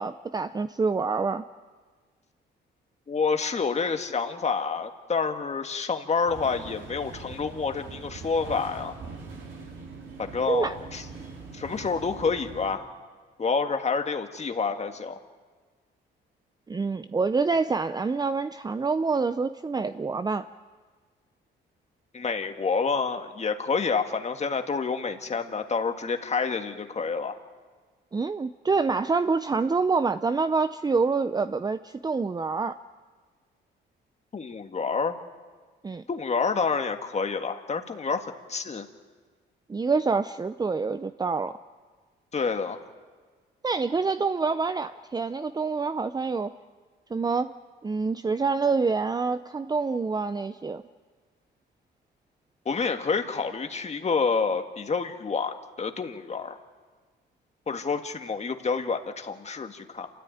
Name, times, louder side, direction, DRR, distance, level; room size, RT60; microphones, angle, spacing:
voice 1, 0.0-1.4 10.5-10.7 16.7-20.5 28.1-32.8 35.8-36.0 39.7-41.6 43.6-46.5 47.1-47.5 47.8-50.8, right 4 dB, 20° right, 11 dB, 0.6 m, -26 dB
voice 2, 3.1-8.9 10.2-11.0 11.5-12.9 13.4-15.2 22.1-27.4 34.3-35.2 36.1-38.9 42.3-42.8 52.7-56.6 57.7-60.1, left 5 dB, 35° left, 6 dB, 1.9 m, -28 dB
sound 1, 6.2-12.7, right 4 dB, 75° right, 5.0 m, -42 dB
28.0 x 13.5 x 9.3 m, 1.5 s
cardioid pair, 90°, 20 cm